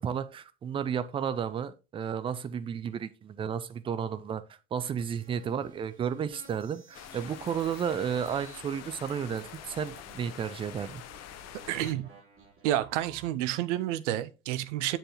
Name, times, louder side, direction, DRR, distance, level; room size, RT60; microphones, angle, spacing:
voice 1, 0.0-4.4 4.7-11.0, right 8 dB, 15° right, 0.3 m, -32 dB
sound 1, 5.0-13.3, right 3 dB, 30° right, 3.5 m, -54 dB
sound 2, 6.9-11.9, left 10 dB, 40° left, 0.8 m, -46 dB
voice 2, 11.7-12.1 12.6-15.0, right 13 dB, 60° right, 0.7 m, -30 dB
7.5 x 6.9 x 2.9 m
figure-of-eight pair, 65°, 41 cm